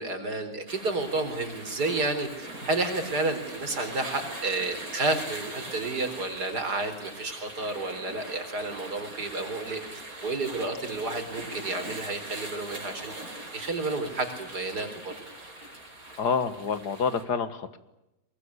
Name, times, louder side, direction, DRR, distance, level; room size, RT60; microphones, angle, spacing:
voice 1, 0.0-9.8 10.2-13.1 13.5-15.1, right 2 dB, 85° right, 7 dB, 4.7 m, -31 dB
sound 1, 0.7-17.2, right 2 dB, 60° right, 6.5 m, -41 dB
voice 2, 16.2-17.8, left 6 dB, 90° left, 13 dB, 2.2 m, -28 dB
23.5 x 21.5 x 9.7 m, 0.92 s
omnidirectional pair, 1.7 m